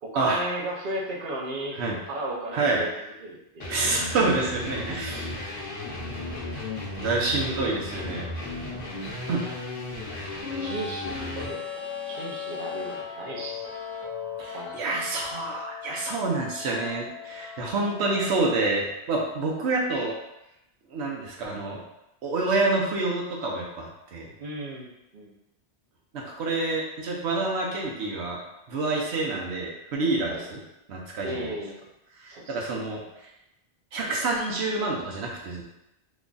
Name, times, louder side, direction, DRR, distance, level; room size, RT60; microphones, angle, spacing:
voice 1, 0.0-1.8 2.1-4.1 9.1-9.5 10.6-11.6 12.1-13.6 14.5-14.9 24.4-25.3 30.3-30.5 31.2-31.8 32.3-32.7, right 1 dB, 55° right, -3 dB, 0.8 m, -35 dB
sound 1, 3.6-11.5, left 2 dB, 60° left, 0.9 m, -35 dB
voice 2, 3.7-5.3 7.0-8.3 9.3-9.5 14.4-20.1 20.9-21.8 22.2-24.3 26.1-28.4 28.7-30.6 30.9-31.5 32.2-33.0 33.9-35.6, right 3 dB, 90° right, -2 dB, 1.0 m, -27 dB
sound 2, 10.4-18.4, left 7 dB, 15° left, 0.8 m, -37 dB
3.0 x 2.3 x 3.8 m, 0.89 s
omnidirectional pair, 1.1 m